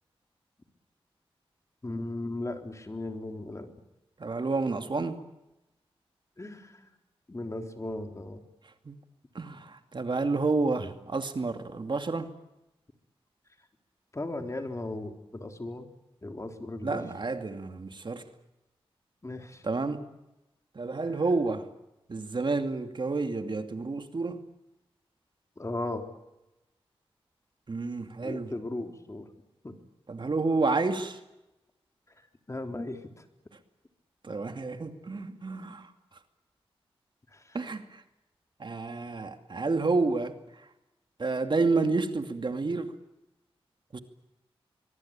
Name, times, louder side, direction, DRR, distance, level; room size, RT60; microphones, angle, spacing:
voice 1, 1.8-3.7 6.4-6.9 7.3-8.4 14.1-15.9 16.2-17.0 19.2-19.6 25.6-26.0 28.2-29.3 29.6-29.7 32.5-33.2 37.3-37.6, left 2 dB, 30° left, 5 dB, 3.7 m, -37 dB
voice 2, 4.2-5.2 8.8-9.0 9.3-12.3 16.8-18.3 19.6-20.0 20.7-21.7 22.1-24.4 27.7-28.5 30.1-31.2 34.2-35.9 37.5-38.0 38.6-40.7 41.2-42.9 43.9-44.0, right 3 dB, 50° right, 7 dB, 2.4 m, -30 dB
23.5 x 23.0 x 8.9 m, 0.95 s
cardioid pair, 60°, 10 cm